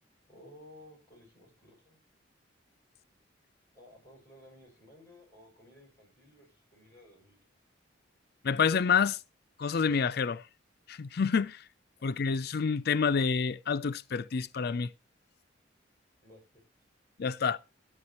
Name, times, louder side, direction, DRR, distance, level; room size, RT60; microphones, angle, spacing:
voice 1, 0.3-2.0 3.7-7.4 12.0-12.1 16.2-16.6, left 1 dB, 15° left, 6.7 m, -56 dB
voice 2, 8.4-9.2 9.6-10.4 10.9-11.6 12.0-14.9 17.2-17.6, left 6 dB, 55° left, 0.4 m, -28 dB
11.0 x 8.7 x 4.2 m
head